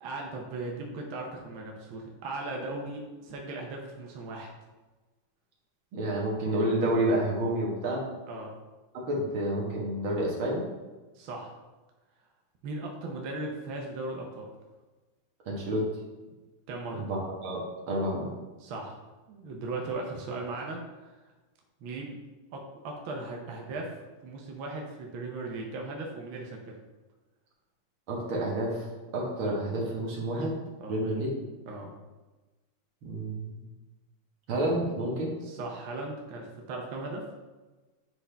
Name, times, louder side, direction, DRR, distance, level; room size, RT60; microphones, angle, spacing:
voice 1, 0.0-4.5 8.3-8.5 11.1-11.5 12.6-14.5 16.7-17.1 18.6-19.0 19.3-21.2 21.8-22.2 22.5-23.9 24.2-26.7 30.8-31.0 31.7-31.9 35.4-37.2, right 2 dB, 80° right, 0 dB, 1.1 m, -37 dB
voice 2, 5.9-8.0 8.9-10.6 15.5-15.9 16.9-17.6 17.9-18.3 28.1-28.9 29.1-30.6 30.9-31.3 33.0-33.6 34.5-35.3, right 1 dB, 50° right, -3 dB, 2.0 m, -29 dB
9.8 x 4.2 x 3.4 m, 1.2 s
omnidirectional pair, 3.6 m